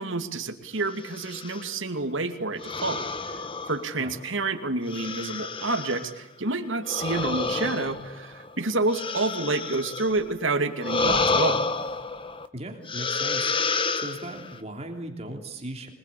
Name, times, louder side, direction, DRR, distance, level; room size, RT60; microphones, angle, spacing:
voice 1, 0.0-3.1 3.7-11.6, right 3 dB, 65° right, 6 dB, 2.6 m, -28 dB
sound 1, 1.0-1.7 2.6-4.2 4.9-6.1 6.8-10.2 10.8-12.5 12.9-14.6, left 3 dB, 25° left, 1.1 m, -29 dB
voice 2, 12.5-13.5 13.9-15.9, right 1 dB, 30° right, 3 dB, 3.2 m, -37 dB
26.0 x 20.5 x 8.6 m, 0.86 s
head